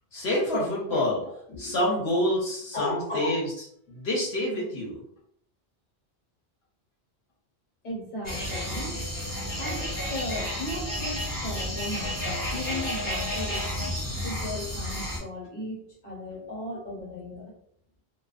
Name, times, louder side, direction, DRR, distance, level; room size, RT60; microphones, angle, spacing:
voice 1, 0.1-1.2 1.5-3.5 3.9-5.0, left 1 dB, 75° left, -4 dB, 0.9 m, -27 dB
voice 2, 0.9-1.3 2.7-3.4 7.8-9.1 9.6-14.0 14.2-17.5, left 1 dB, 50° left, -4 dB, 1.0 m, -36 dB
sound 1, 8.2-15.2, equal, 20° left, 0.9 m, -31 dB
2.4 x 2.2 x 2.3 m, 0.69 s
omnidirectional pair, 1.1 m